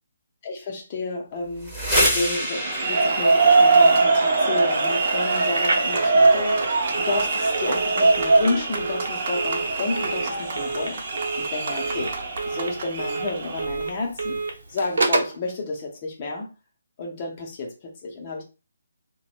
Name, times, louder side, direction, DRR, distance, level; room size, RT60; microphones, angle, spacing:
voice 1, 0.4-11.0 11.4-12.1 12.5-16.5 17.0-18.4, left 3 dB, 25° left, 0.8 m, -31 dB
sound 1, 1.5-11.2, equal, ahead, 0.8 m, -31 dB
sound 2, 2.6-13.6, right 3 dB, 35° right, 0.7 m, -22 dB
Telephone, 5.5-15.4, right 3 dB, 70° right, 0.9 m, -30 dB
2.6 x 2.3 x 4.0 m
hypercardioid pair, 175°, 0 cm